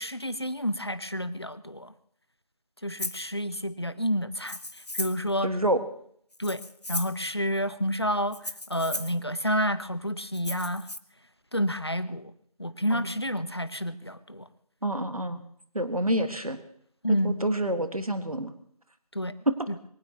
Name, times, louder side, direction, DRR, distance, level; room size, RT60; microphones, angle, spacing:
voice 1, 0.0-1.9 2.8-5.5 6.4-6.6 6.9-8.4 8.7-10.9 11.5-12.3 12.6-14.5 17.0-17.4 19.1-19.4 19.7-19.8, equal, 40° left, 14 dB, 0.7 m, -29 dB
Rattle (instrument), 3.0-3.3 4.4-5.3 6.3-7.2 8.3-9.2 10.3-11.0, left 2 dB, 85° left, 1.1 m, -36 dB
voice 2, 5.4-5.8 12.9-13.0 14.8-15.4 15.7-16.6 17.1-18.5 19.5-19.6, right 1 dB, 65° right, 9 dB, 1.7 m, -27 dB
23.5 x 16.0 x 3.0 m, 0.63 s
figure-of-eight pair, 180°, 20 cm